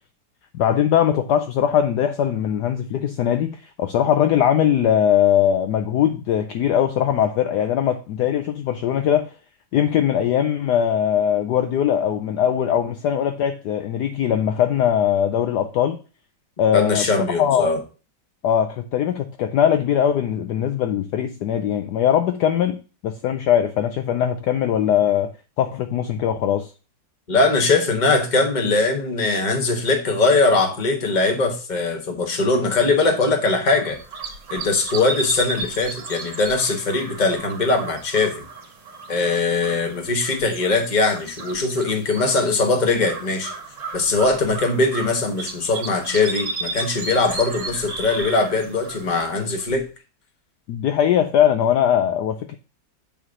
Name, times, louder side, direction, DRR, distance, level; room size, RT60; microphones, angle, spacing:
voice 1, 0.5-9.3 9.7-16.0 16.6-17.7 18.4-22.8 23.0-25.3 25.6-26.7 50.7-52.6, left 9 dB, 70° left, 1.1 m, -20 dB
voice 2, 16.7-17.8 27.3-34.0 34.5-38.5 39.1-43.5 43.9-49.9, left 3 dB, 25° left, 1.2 m, -21 dB
sound 1, 33.8-49.8, right 3 dB, 70° right, 2.3 m, -34 dB
8.6 x 3.2 x 6.3 m
omnidirectional pair, 2.1 m